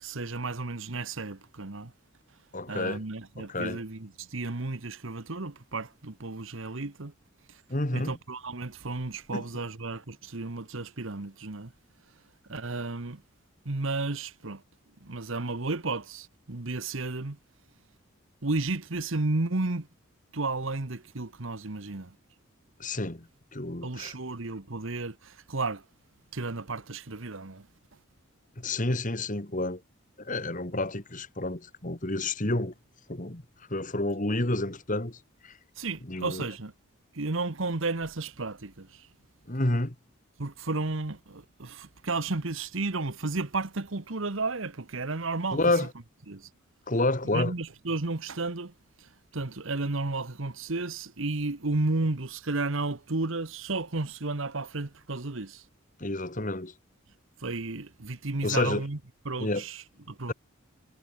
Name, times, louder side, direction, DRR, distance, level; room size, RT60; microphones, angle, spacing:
voice 1, 0.0-1.9 2.7-7.1 7.5-7.6 7.9-11.7 12.5-13.2 13.6-14.6 15.0-17.4 18.4-19.9 20.3-22.2 23.8-25.8 26.3-27.7 35.8-36.7 37.1-39.1 40.4-45.6 46.3-46.5 47.3-55.6 57.4-59.0 59.2-60.3, right 3 dB, 65° right, 1.3 m, -33 dB
voice 2, 2.5-3.0 3.4-3.8 7.7-8.1 9.3-9.4 22.8-24.1 28.6-29.8 30.2-32.7 33.1-33.4 33.7-35.2 35.4-35.5 36.1-36.4 39.5-39.9 45.5-45.9 46.9-47.5 56.0-56.7 58.4-58.8 59.4-59.6, left 2 dB, 40° left, 2.3 m, -29 dB
head